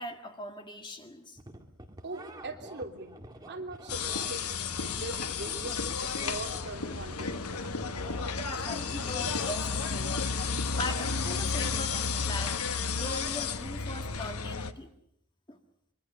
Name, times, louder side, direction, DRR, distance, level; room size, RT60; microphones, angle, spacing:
voice 1, 0.0-1.4 8.4-14.9 15.5-15.6, left 1 dB, 20° left, 5 dB, 2.0 m, -40 dB
sound 1, 1.4-9.9, right 1 dB, 15° right, 1.8 m, -49 dB
voice 2, 2.0-3.1 3.5-7.5, right 2 dB, 50° right, 2 dB, 3.2 m, -41 dB
sound 2, 3.9-14.7, left 5 dB, 80° left, 1.3 m, -32 dB
25.5 x 23.0 x 6.8 m, 0.73 s
head